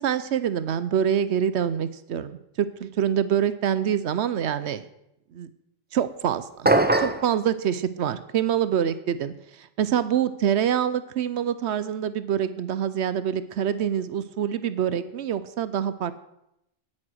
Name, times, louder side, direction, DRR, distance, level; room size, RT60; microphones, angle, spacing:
voice 1, 0.0-4.9 5.3-5.5 5.9-6.7 7.0-9.3 9.6-16.1, right 9 dB, 65° right, 14 dB, 0.8 m, -25 dB
sound 1, 6.7-7.3, right 2 dB, 15° right, 0.3 m, -20 dB
9.8 x 8.8 x 6.3 m, 0.84 s
omnidirectional pair, 1.3 m